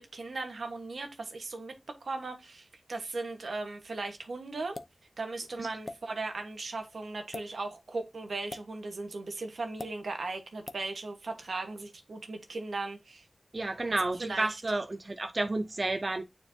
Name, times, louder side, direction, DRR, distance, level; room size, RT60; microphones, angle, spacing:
voice 1, 0.0-4.8 5.2-13.2 14.2-14.6, right 3 dB, 85° right, 1.4 m, -38 dB
sound 1, 4.7-5.0 5.8-6.0 7.2-7.5 8.5-8.7 9.8-9.9 10.7-10.8, left 2 dB, 40° left, 0.7 m, -40 dB
voice 2, 13.5-16.2, right 2 dB, 40° right, 0.6 m, -31 dB
9.3 x 4.5 x 2.8 m
wide cardioid pair, 95°, 0 cm